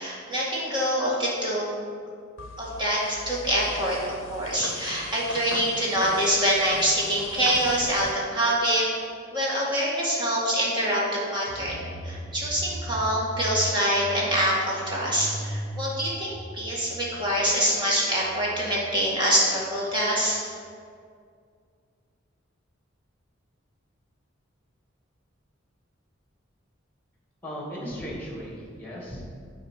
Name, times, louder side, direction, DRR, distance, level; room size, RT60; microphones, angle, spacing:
voice 1, 0.0-1.7 2.6-4.0 4.3-8.8 9.3-20.4, equal, 25° right, -6 dB, 1.9 m, -25 dB
sound 1, 2.4-8.1, left 3 dB, 85° left, 0.6 m, -39 dB
sound 2, 11.5-20.3, right 1 dB, 40° right, 1.7 m, -39 dB
voice 2, 27.4-29.3, equal, 10° left, -4 dB, 2.0 m, -36 dB
8.6 x 4.4 x 6.4 m, 2.2 s
head